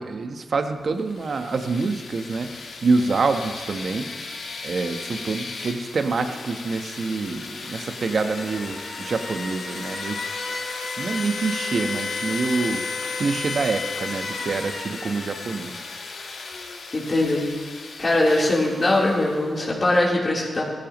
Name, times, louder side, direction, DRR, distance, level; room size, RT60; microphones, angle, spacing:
voice 1, 0.0-2.5 2.8-4.4 4.6-10.2 11.0-12.8 13.2-15.7, right 4 dB, 65° right, 7 dB, 1.2 m, -26 dB
sound 1, 1.0-19.7, left 4 dB, 70° left, 1.8 m, -34 dB
voice 2, 16.9-17.5 18.0-20.6, left 2 dB, 45° left, -5 dB, 3.7 m, -21 dB
17.5 x 14.0 x 3.1 m, 1.5 s
supercardioid pair, 40°, 0 cm